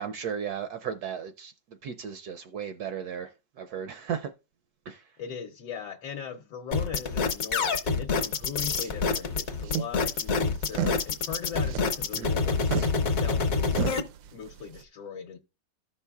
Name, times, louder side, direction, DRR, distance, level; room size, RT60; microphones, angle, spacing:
voice 1, 0.0-1.5 1.8-3.3 3.6-4.3 4.9-5.0 12.1-12.3, right 7 dB, 70° right, 0.9 m, -35 dB
voice 2, 5.2-14.1 14.3-15.4, left 7 dB, 70° left, 1.3 m, -39 dB
sound 1, 6.7-14.0, left 4 dB, 55° left, 1.2 m, -26 dB
sound 2, 8.2-14.8, right 10 dB, 85° right, 1.3 m, -37 dB
14.0 x 5.5 x 2.3 m
omnidirectional pair, 2.0 m